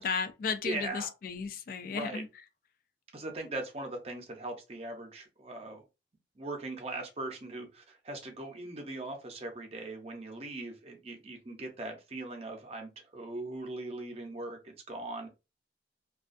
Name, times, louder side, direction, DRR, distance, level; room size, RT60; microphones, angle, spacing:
voice 1, 0.0-2.3, left 5 dB, 50° left, 0.3 m, -34 dB
voice 2, 0.6-1.1 1.9-2.2 3.1-5.8 6.4-15.3, right 2 dB, 35° right, 0.6 m, -40 dB
2.3 x 2.2 x 2.5 m
head